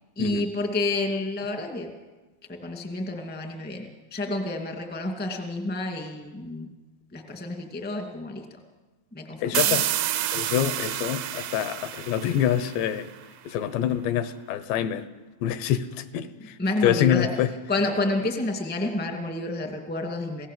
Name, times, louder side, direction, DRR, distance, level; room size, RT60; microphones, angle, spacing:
voice 1, 0.1-1.9 2.5-6.7 7.1-8.6 9.1-9.9 16.6-17.3 17.7-20.5, left 2 dB, 10° left, 3 dB, 0.6 m, -29 dB
voice 2, 9.4-9.9 10.3-13.1 13.5-15.0 15.4-16.6 16.8-17.5, left 10 dB, 80° left, 12 dB, 3.2 m, -26 dB
sound 1, 9.5-13.2, right 12 dB, 75° right, 2.3 m, -29 dB
28.5 x 17.0 x 7.6 m, 1.2 s
omnidirectional pair, 5.0 m